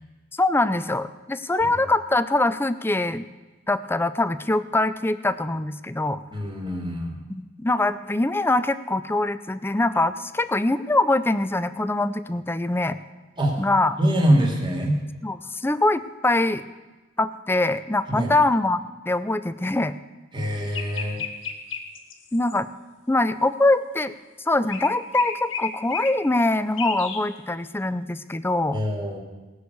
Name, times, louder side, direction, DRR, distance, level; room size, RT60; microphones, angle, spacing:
voice 1, 0.4-3.3 3.7-6.2 7.3-13.0 13.6-14.0 15.2-16.6 17.2-19.9 22.3-22.7 23.1-24.1 24.5-28.8, left 2 dB, 10° left, 13 dB, 0.5 m, -23 dB
voice 2, 6.3-7.1 13.4-13.6 14.0-15.0 18.1-18.3 20.3-21.2 28.7-29.2, equal, 25° right, 1 dB, 2.5 m, -23 dB
sound 1, 20.7-22.6 24.7-26.2 26.8-27.2, left 6 dB, 80° left, 1.6 m, -32 dB
18.5 x 6.5 x 8.2 m, 1.2 s
head